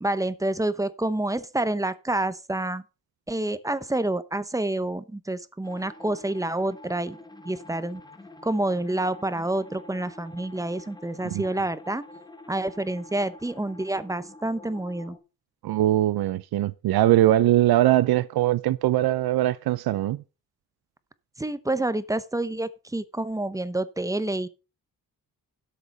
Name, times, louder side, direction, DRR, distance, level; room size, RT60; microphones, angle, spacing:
voice 1, 0.0-2.8 3.3-7.2 7.4-8.0 8.4-12.0 12.5-15.2 21.4-24.5, right 1 dB, 10° right, 0.7 m, -28 dB
sound 1, 5.6-15.2, left 2 dB, 10° left, 1.3 m, -47 dB
voice 2, 15.6-20.2, right 14 dB, 85° right, 0.6 m, -21 dB
12.5 x 6.7 x 5.4 m
wide cardioid pair, 145°, 36 cm